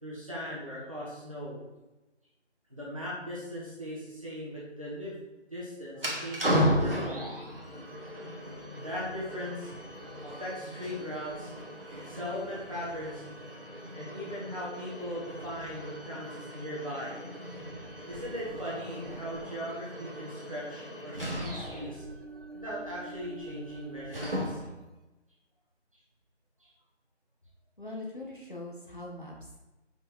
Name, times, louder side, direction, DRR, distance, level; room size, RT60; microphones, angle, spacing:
voice 1, 0.0-1.6 2.7-7.3 8.1-9.7 10.2-13.3 13.9-17.2 18.0-22.0 22.5-24.6, equal, 30° right, -7 dB, 1.7 m, -39 dB
sound 1, 5.9-24.9, equal, 55° right, 1.4 m, -36 dB
voice 2, 27.8-29.6, left 2 dB, 45° left, -2 dB, 1.4 m, -42 dB
6.6 x 5.5 x 3.3 m, 1.1 s
figure-of-eight pair, 175°, 34 cm